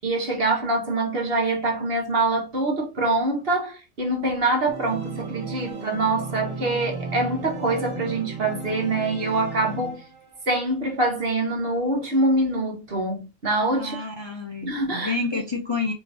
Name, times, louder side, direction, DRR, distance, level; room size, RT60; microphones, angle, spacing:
voice 1, 0.0-10.0 10.5-14.0 14.6-15.1, right 2 dB, 55° right, 1.5 m, -24 dB
Organ, 4.7-10.4, right 3 dB, 30° right, 1.0 m, -34 dB
voice 2, 13.8-15.9, left 3 dB, 30° left, 0.7 m, -29 dB
4.8 x 3.1 x 2.7 m
omnidirectional pair, 1.2 m